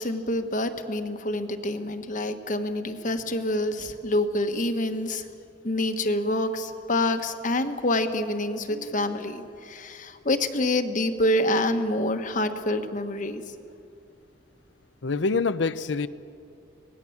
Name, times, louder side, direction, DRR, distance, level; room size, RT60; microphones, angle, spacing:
voice 1, 0.0-5.3 5.6-13.4, left 1 dB, 45° left, 7 dB, 1.3 m, -27 dB
voice 2, 15.0-16.1, left 4 dB, 75° left, 15 dB, 0.7 m, -25 dB
25.0 x 18.5 x 7.3 m, 2.5 s
head